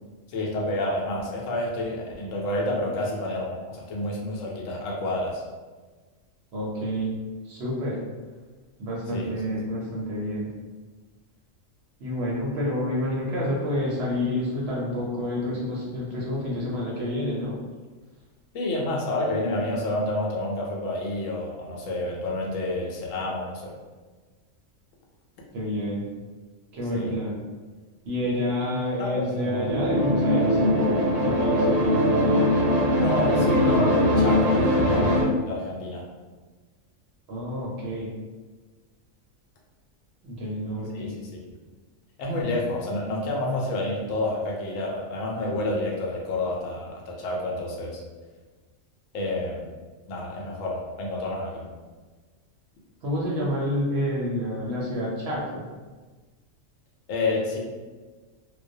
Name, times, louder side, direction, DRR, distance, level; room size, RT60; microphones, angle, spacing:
voice 1, 0.3-5.4 9.1-9.3 18.5-23.7 26.9-27.2 28.6-28.7 29.0-29.7 32.9-36.0 40.9-41.4 42.2-48.0 49.1-49.6 50.1-51.7 57.1-57.6, left 1 dB, 75° left, -3 dB, 0.9 m, -29 dB
voice 2, 6.5-7.2 7.4-8.0 8.8-10.5 12.0-17.5 25.5-26.1 26.7-27.4 28.0-32.5 37.3-38.1 40.2-41.1 53.0-55.7, equal, 65° right, -5 dB, 0.7 m, -29 dB
sound 1, 29.5-35.2, equal, 85° right, 1.0 m, -21 dB
2.3 x 2.1 x 2.6 m, 1.3 s
omnidirectional pair, 1.4 m